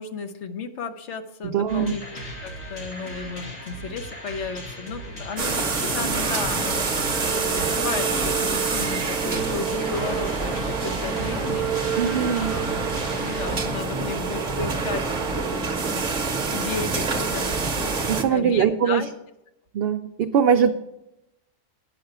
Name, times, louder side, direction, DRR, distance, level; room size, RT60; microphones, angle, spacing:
voice 1, 0.0-2.0 2.4-11.7 12.3-17.5 18.2-19.1, left 5 dB, 65° left, 8 dB, 1.0 m, -34 dB
voice 2, 1.4-2.0 12.0-12.5 18.1-19.0 19.7-20.7, right 8 dB, 60° right, 5 dB, 0.7 m, -21 dB
sound 1, 1.7-13.4, equal, 85° left, 2.5 m, -38 dB
sound 2, 5.4-18.2, right 4 dB, 40° right, 0.9 m, -26 dB
10.0 x 5.8 x 6.6 m, 0.88 s
omnidirectional pair, 1.4 m